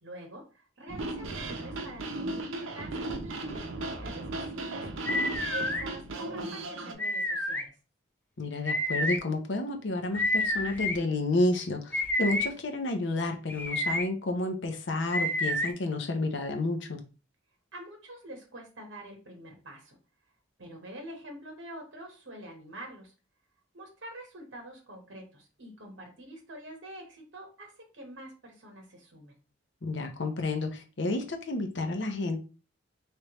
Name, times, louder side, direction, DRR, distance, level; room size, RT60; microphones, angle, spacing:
voice 1, 0.0-7.7 17.7-20.0 20.6-23.1 23.7-29.4, right 1 dB, 70° right, 2 dB, 1.0 m, -46 dB
sound 1, 0.9-6.9, right 2 dB, 90° right, 0.6 m, -36 dB
sound 2, 5.1-5.8 7.0-7.6 8.7-9.2 10.1-11.0 11.9-12.5 13.5-14.0 15.1-15.7, left 1 dB, 10° left, 0.3 m, -29 dB
voice 2, 8.4-17.0 29.8-32.4, left 2 dB, 65° left, 5 dB, 0.7 m, -30 dB
3.3 x 3.1 x 2.9 m, 0.33 s
head